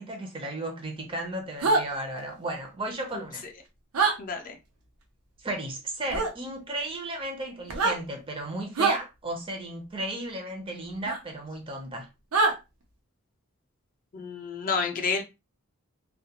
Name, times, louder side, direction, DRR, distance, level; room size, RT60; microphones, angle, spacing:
voice 1, 0.0-3.4 5.4-12.1, right 1 dB, 25° right, 0.5 m, -34 dB
sound 1, 1.6-1.8 3.9-4.1 6.1-6.3 7.6-8.0 8.7-9.0 11.1-11.2 12.3-12.5, right 3 dB, 90° right, 0.6 m, -23 dB
voice 2, 4.2-4.6 14.1-15.2, left 5 dB, 40° left, 0.4 m, -30 dB
2.2 x 2.1 x 2.8 m
head